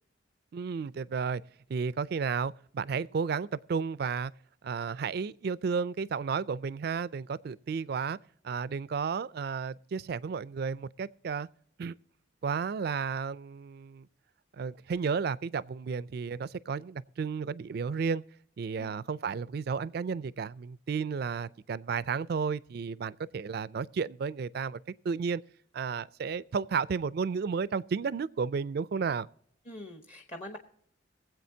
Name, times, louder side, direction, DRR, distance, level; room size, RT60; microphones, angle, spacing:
voice 1, 0.5-1.4 1.7-4.3 4.6-8.2 8.4-11.5 11.8-11.9 12.4-14.1 14.6-18.2 18.6-24.8 25.0-25.4 25.7-29.3, right 5 dB, 50° right, 0.3 m, -32 dB
voice 2, 29.6-30.6, left 1 dB, 35° left, 1.0 m, -43 dB
22.5 x 8.0 x 2.7 m
head